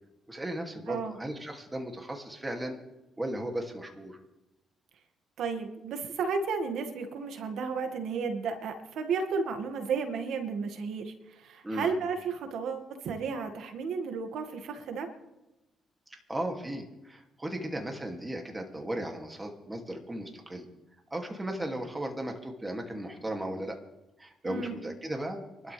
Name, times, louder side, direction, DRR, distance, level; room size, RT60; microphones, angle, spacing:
voice 1, 0.3-2.8 3.2-4.2 11.6-12.0 16.1-20.7 21.1-23.8 24.2-25.7, right 1 dB, 15° right, 3 dB, 2.7 m, -36 dB
voice 2, 0.9-1.2 5.4-15.1 24.4-24.8, right 5 dB, 75° right, 5 dB, 2.2 m, -33 dB
25.0 x 12.5 x 3.5 m, 0.97 s
cardioid pair, 90°, 0 cm